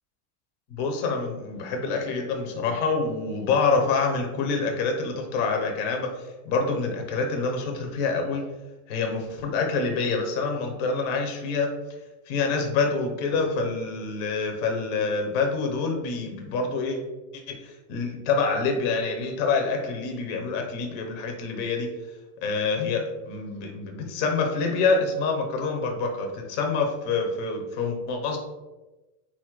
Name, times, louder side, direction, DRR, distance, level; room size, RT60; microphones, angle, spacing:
voice 1, 0.7-6.2 6.4-8.4 8.9-11.7 12.3-17.0 17.3-21.9 22.4-28.4, left 4 dB, 25° left, 2 dB, 0.4 m, -26 dB
4.0 x 2.4 x 4.4 m, 1.1 s
supercardioid pair, 170°, 45 cm